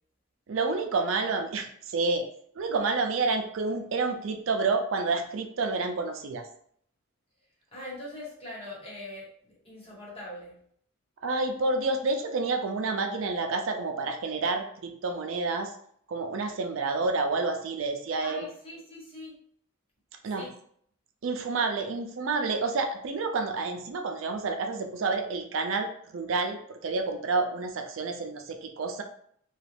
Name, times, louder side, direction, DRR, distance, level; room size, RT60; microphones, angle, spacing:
voice 1, 0.5-2.2 2.6-6.5 11.2-15.7 16.1-18.4 20.2-20.5 21.2-29.0, right 3 dB, 70° right, 4 dB, 0.4 m, -29 dB
voice 2, 7.7-10.6 18.2-19.3 20.3-20.5, left 1 dB, 30° left, -4 dB, 1.2 m, -42 dB
3.0 x 2.3 x 3.3 m, 0.64 s
head